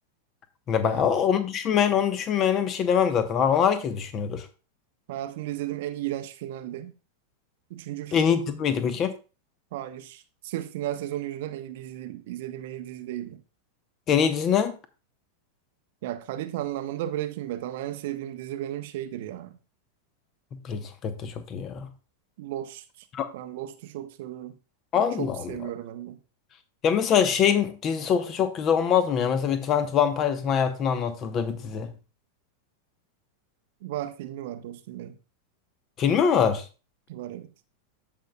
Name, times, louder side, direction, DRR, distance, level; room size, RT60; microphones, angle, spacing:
voice 1, 0.7-4.4 8.1-9.1 14.1-14.7 20.6-21.9 23.1-23.3 24.9-25.6 26.8-31.9 36.0-36.6, left 8 dB, 30° left, 0.9 m, -24 dB
voice 2, 5.1-6.9 7.7-8.2 9.7-13.4 16.0-19.6 22.4-23.1 23.3-24.6 25.2-26.2 33.8-35.2 37.1-37.5, right 13 dB, 50° right, 0.6 m, -34 dB
14.5 x 5.4 x 2.3 m
figure-of-eight pair, 90°, 0 cm